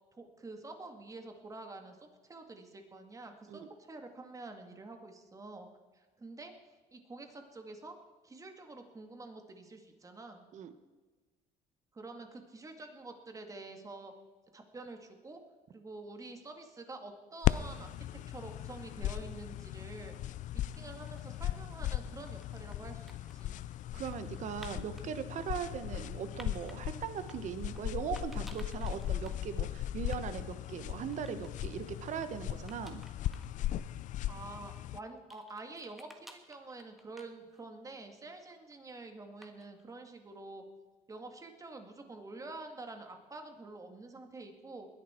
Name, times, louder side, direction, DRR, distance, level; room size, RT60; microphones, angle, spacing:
voice 1, 0.1-2.0 2.2-5.7 5.9-6.5 6.9-8.0 8.2-10.4 11.9-14.1 14.5-15.4 15.7-20.1 20.5-23.5 34.3-40.6 41.1-44.9, right 2 dB, 20° right, 5 dB, 2.1 m, -48 dB
sound 1, 17.4-35.0, left 13 dB, 60° left, 0.4 m, -37 dB
sound 2, 20.7-21.5 22.1-25.1 25.6-26.8 27.2-27.8 28.2-29.4 29.7-29.8 30.0-30.2 30.5-31.8 32.2-32.3 32.7-33.5 33.9-34.0 34.6-37.8 38.1-38.7 39.4-39.8, equal, ahead, 1.7 m, -56 dB
voice 2, 23.9-33.0, right 8 dB, 55° right, 11 dB, 1.2 m, -39 dB
21.0 x 10.5 x 4.5 m, 1.3 s
cardioid pair, 115°, 15 cm